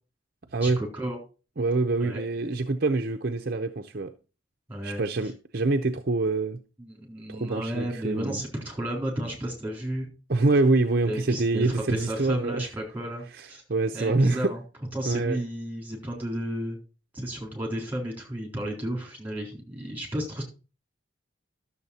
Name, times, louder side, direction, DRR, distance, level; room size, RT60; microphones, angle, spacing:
voice 1, 0.6-1.2 2.0-2.2 4.7-5.0 6.8-10.1 11.1-13.6 13.9-14.6 14.9-16.8 17.1-20.4, right 1 dB, 10° right, 3.8 m, -33 dB
voice 2, 1.6-4.1 4.8-6.6 7.3-8.4 10.3-12.7 13.3-14.5 15.1-15.4, right 3 dB, 50° right, 0.7 m, -25 dB
12.0 x 7.2 x 4.2 m
head